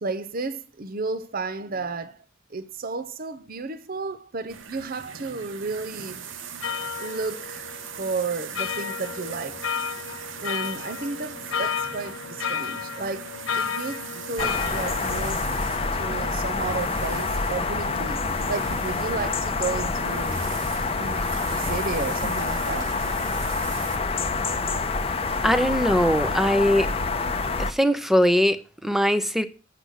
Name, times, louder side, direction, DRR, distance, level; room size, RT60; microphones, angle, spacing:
voice 1, 0.0-2.2 2.5-6.2 7.0-7.7 8.0-9.7 10.4-14.0 14.3-15.4 16.0-20.4 21.0-22.9, right 4 dB, 50° right, 0.8 m, -32 dB
sound 1, 4.5-24.0, right 7 dB, 75° right, 0.9 m, -40 dB
sound 2, 6.6-15.2, left 7 dB, 85° left, 0.8 m, -32 dB
sound 3, 14.4-27.7, left 3 dB, 30° left, 0.8 m, -27 dB
voice 2, 25.4-26.9 27.6-29.4, equal, ahead, 0.7 m, -21 dB
8.2 x 6.7 x 6.3 m
head